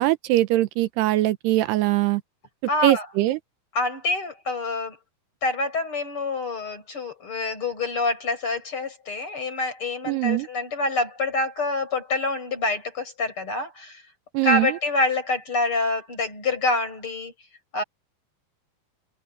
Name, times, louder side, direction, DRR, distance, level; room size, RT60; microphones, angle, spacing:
voice 1, 0.0-2.2 2.8-3.4 10.1-10.5 14.3-14.7, right 16 dB, 80° right, 2.9 m, -22 dB
voice 2, 2.7-3.1 3.7-5.0 5.4-14.0 14.4-17.3 17.7-17.8, left 3 dB, 30° left, 7.3 m, -26 dB
omnidirectional pair, 4.8 m